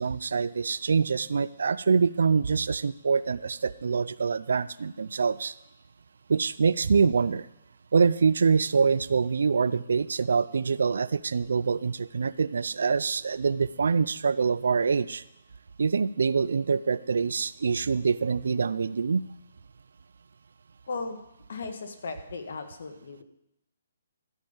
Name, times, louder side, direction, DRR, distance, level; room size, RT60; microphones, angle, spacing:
voice 1, 0.0-5.5 6.3-7.5 7.9-15.2 15.8-19.3, right 5 dB, 75° right, 18 dB, 0.4 m, -25 dB
voice 2, 20.9-21.2 21.5-23.2, left 4 dB, 65° left, 6 dB, 1.6 m, -36 dB
14.0 x 5.3 x 7.2 m, 0.85 s
hypercardioid pair, 160°, 0 cm